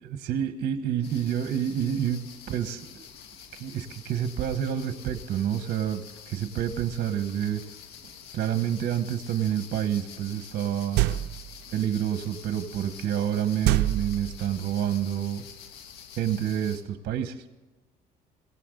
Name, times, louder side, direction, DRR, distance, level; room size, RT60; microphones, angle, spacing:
voice 1, 0.0-3.1 3.5-7.6 8.3-11.0 11.7-15.4 16.2-17.4, right 9 dB, 65° right, 8 dB, 1.2 m, -28 dB
sound 1, 1.0-16.8, left 8 dB, 80° left, 1.9 m, -47 dB
sound 2, 11.0-11.6 13.6-14.7, right 15 dB, 85° right, 0.5 m, -25 dB
17.0 x 17.0 x 3.9 m, 1.2 s
cardioid pair, 110°, 17 cm